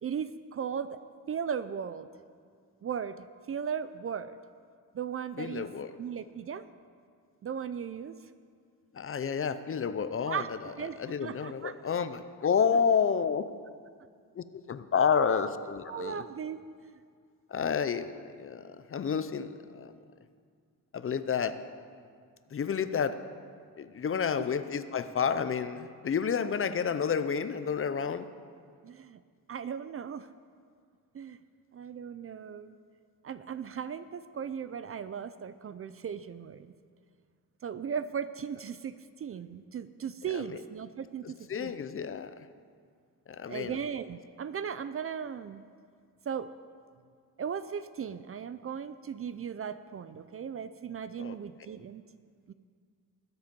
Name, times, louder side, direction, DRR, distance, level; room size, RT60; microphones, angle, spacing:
voice 1, 0.0-1.0 1.3-2.1 2.8-4.4 4.9-5.7 6.0-6.6 7.4-8.2 10.3-10.5 10.8-11.8 15.3-15.4 15.9-16.9 24.4-24.5 28.8-29.2 29.5-30.3 31.1-31.4 31.7-32.8 33.2-36.7 37.6-41.7 43.5-45.6 46.3-46.5 47.4-52.0 52.5-52.6, right 7 dB, 40° right, 13 dB, 0.4 m, -37 dB
voice 2, 5.4-5.9 9.0-10.4 11.0-13.4 14.4-16.2 17.5-18.1 18.4-18.6 18.9-19.9 20.9-21.5 22.5-23.2 23.8-28.3 40.3-40.4 41.5-42.3 43.3-43.8 51.2-51.3, left 6 dB, 35° left, 12 dB, 0.5 m, -30 dB
20.0 x 8.0 x 5.2 m, 2.1 s
cardioid pair, 130°, 37 cm